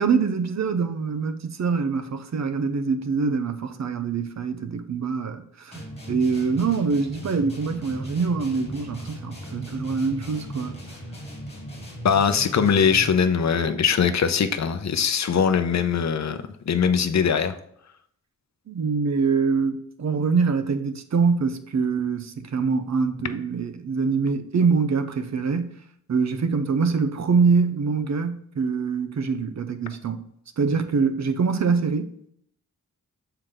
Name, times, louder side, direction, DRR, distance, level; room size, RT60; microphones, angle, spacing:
voice 1, 0.0-10.8 18.7-25.8 26.1-30.2 30.6-32.1, right 5 dB, 55° right, 0.7 m, -24 dB
sound 1, 5.7-13.2, equal, 20° left, 2.0 m, -37 dB
voice 2, 12.0-16.4 16.7-17.5, left 7 dB, 55° left, 0.6 m, -21 dB
6.6 x 4.6 x 3.8 m
wide cardioid pair, 140°, 32 cm